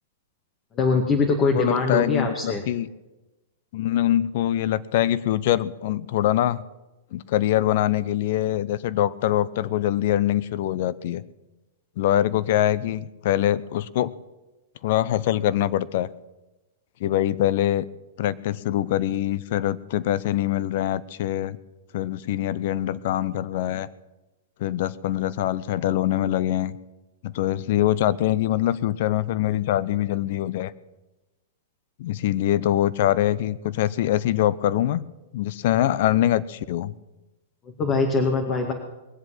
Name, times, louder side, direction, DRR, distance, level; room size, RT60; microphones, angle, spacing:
voice 1, 0.7-2.6 37.6-38.7, left 4 dB, 30° left, 2 dB, 2.1 m, -22 dB
voice 2, 1.5-2.9 3.7-6.6 7.1-11.2 12.0-14.1 14.8-16.1 17.0-17.9 18.2-21.6 21.9-23.9 24.6-26.7 27.2-30.7 32.0-35.0 35.3-36.9, left 12 dB, 60° left, 18 dB, 0.7 m, -23 dB
21.0 x 7.9 x 7.7 m, 1.1 s
hypercardioid pair, 115°, 0 cm